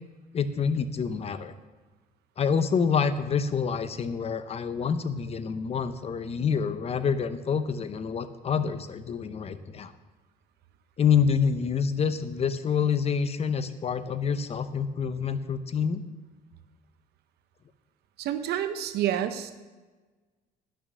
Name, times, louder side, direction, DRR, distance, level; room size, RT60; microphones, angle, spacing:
voice 1, 0.3-1.5 2.4-9.9 11.0-16.0, left 6 dB, 35° left, 12 dB, 0.8 m, -27 dB
voice 2, 18.2-19.5, right 11 dB, 75° right, 10 dB, 0.9 m, -28 dB
10.5 x 6.3 x 6.7 m, 1.3 s
cardioid pair, 110°, 17 cm